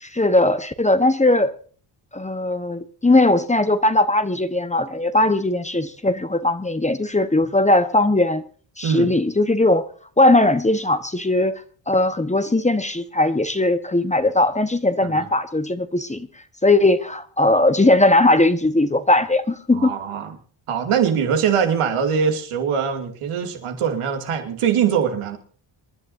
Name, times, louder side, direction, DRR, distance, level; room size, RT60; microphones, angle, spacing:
voice 1, 0.0-1.5 2.1-8.5 8.8-9.9 10.2-16.3 16.6-19.9, left 2 dB, 15° left, 1.1 m, -19 dB
voice 2, 19.7-20.4 20.7-25.4, right 7 dB, 85° right, 2.6 m, -22 dB
27.5 x 11.0 x 2.7 m
cardioid pair, 75°, 50 cm